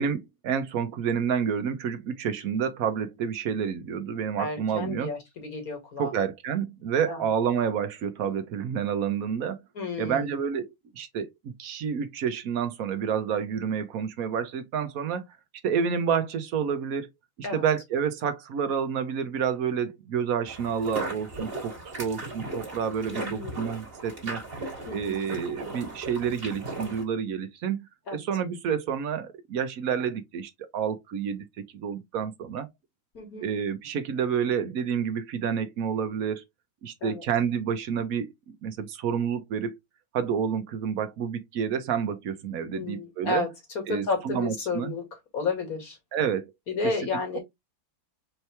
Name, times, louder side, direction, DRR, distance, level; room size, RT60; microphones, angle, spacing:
voice 1, 0.0-5.1 6.0-9.6 10.0-10.7 10.9-15.2 15.6-17.1 17.4-24.4 24.9-27.8 28.1-31.4 31.7-32.7 33.4-36.4 36.8-39.8 40.1-43.4 43.9-44.9 46.1-46.5, right 7 dB, 75° right, 1.2 m, -29 dB
voice 2, 4.4-6.1 7.1-7.2 9.7-10.4 17.4-17.7 23.0-23.6 24.9-25.2 28.1-28.2 33.1-33.5 37.0-37.2 42.7-43.5 43.7-45.1 45.3-46.0 46.7-47.4, left 3 dB, 85° left, 2.4 m, -32 dB
sound 1, 20.5-27.0, right 2 dB, 40° right, 1.9 m, -37 dB
4.6 x 2.9 x 3.2 m
omnidirectional pair, 1.5 m